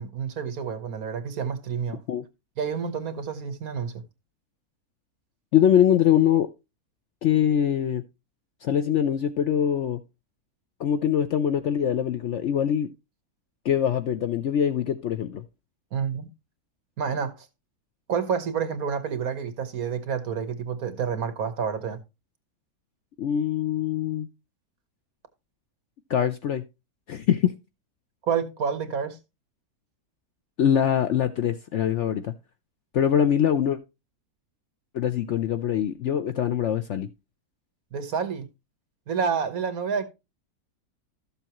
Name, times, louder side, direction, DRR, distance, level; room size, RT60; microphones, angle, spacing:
voice 1, 0.0-2.0 2.6-4.0 15.9-16.3 17.0-17.5 18.1-22.0 28.2-29.2 37.9-38.5 39.1-40.1, right 6 dB, 70° right, 1.6 m, -29 dB
voice 2, 5.5-6.5 7.2-8.0 8.6-10.0 10.8-12.9 13.6-15.4 23.2-24.3 26.1-26.6 27.1-27.5 30.6-32.3 32.9-33.8 34.9-37.1, left 9 dB, 60° left, 0.8 m, -23 dB
13.0 x 7.0 x 2.9 m
omnidirectional pair, 1.6 m